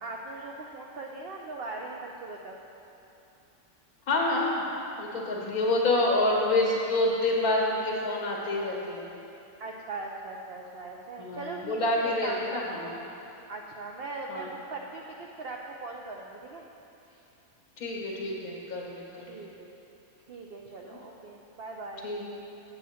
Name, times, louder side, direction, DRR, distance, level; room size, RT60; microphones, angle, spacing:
voice 1, 0.0-2.6 5.6-5.7 9.6-12.9 13.5-16.7 17.1-17.2 19.2-19.7 20.3-22.1, right 3 dB, 60° right, 0 dB, 0.6 m, -40 dB
voice 2, 4.1-4.6 5.0-9.1 11.2-12.9 14.3-14.5 17.8-19.4 20.8-21.0 22.0-22.3, left 2 dB, 90° left, -3 dB, 1.8 m, -28 dB
8.3 x 8.2 x 4.2 m, 2.8 s
omnidirectional pair, 1.5 m